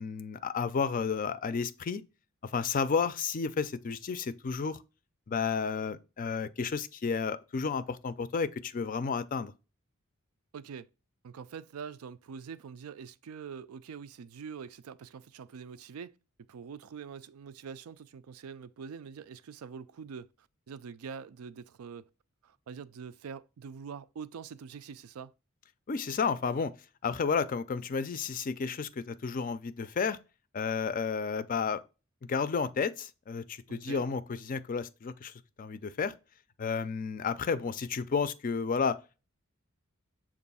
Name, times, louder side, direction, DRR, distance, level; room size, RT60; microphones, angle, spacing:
voice 1, 0.0-2.0 2.4-4.8 5.3-9.5 25.9-26.7 27.0-30.2 30.5-31.8 32.3-35.3 35.6-36.1 36.6-39.0, left 5 dB, 40° left, 0.4 m, -32 dB
voice 2, 10.5-10.9 11.2-16.2 16.5-22.1 22.4-25.3 33.7-34.1, right 6 dB, 85° right, 0.4 m, -44 dB
7.0 x 2.5 x 5.4 m
head